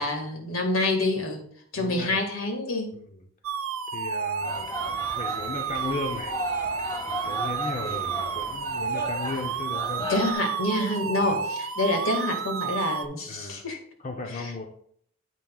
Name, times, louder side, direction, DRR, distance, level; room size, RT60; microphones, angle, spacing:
voice 1, 0.0-1.5 1.7-3.0 10.0-13.8 14.3-14.7, left 2 dB, 80° left, 3 dB, 1.9 m, -27 dB
voice 2, 1.7-2.2 3.1-3.2 3.9-6.4 7.1-10.1 11.2-11.3 13.3-13.6 14.0-14.6, left 3 dB, 35° left, 3 dB, 0.7 m, -36 dB
sound 1, 3.4-13.1, right 6 dB, 80° right, 0.7 m, -31 dB
sound 2, 4.4-10.3, left 1 dB, 20° left, 1.4 m, -36 dB
9.5 x 8.3 x 2.4 m, 0.63 s
head